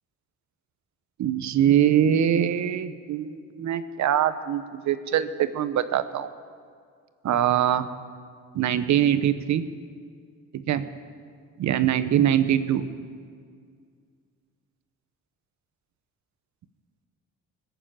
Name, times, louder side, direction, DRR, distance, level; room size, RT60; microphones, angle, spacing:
voice 1, 1.2-6.3 7.2-7.9 8.5-9.6 10.5-10.8 11.6-12.8, right 10 dB, 70° right, 12 dB, 0.9 m, -23 dB
20.0 x 7.1 x 8.9 m, 2.1 s
cardioid pair, 90°, 30 cm